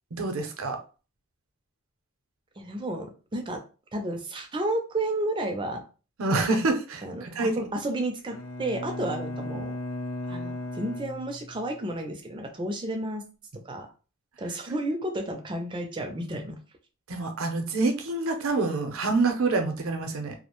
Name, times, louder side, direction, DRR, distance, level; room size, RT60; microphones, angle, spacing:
voice 1, 0.1-0.8 6.2-7.5 17.1-20.3, right 3 dB, 75° right, 5 dB, 0.6 m, -27 dB
voice 2, 2.6-3.6 3.9-5.8 7.0-9.7 10.3-13.2 13.6-13.9 14.4-16.6, right 1 dB, 20° right, 3 dB, 0.4 m, -32 dB
Bowed string instrument, 8.3-11.9, left 1 dB, 80° left, 0.4 m, -36 dB
2.3 x 2.1 x 2.9 m, 0.34 s
head